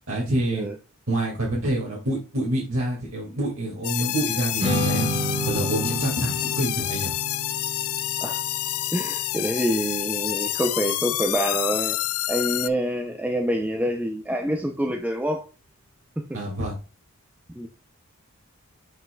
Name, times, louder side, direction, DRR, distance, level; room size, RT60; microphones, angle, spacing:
voice 1, 0.1-0.7 1.1-5.1 5.5-7.1 16.3-16.8, right 1 dB, 65° right, 2.1 m, -27 dB
sound 1, 3.8-12.7, left 15 dB, 80° left, 0.4 m, -28 dB
Strum, 4.6-10.9, right 1 dB, 30° right, 1.8 m, -31 dB
voice 2, 8.9-12.0 12.3-15.4 16.2-16.4 17.6-17.7, equal, 5° right, 0.5 m, -26 dB
7.5 x 5.7 x 2.3 m
head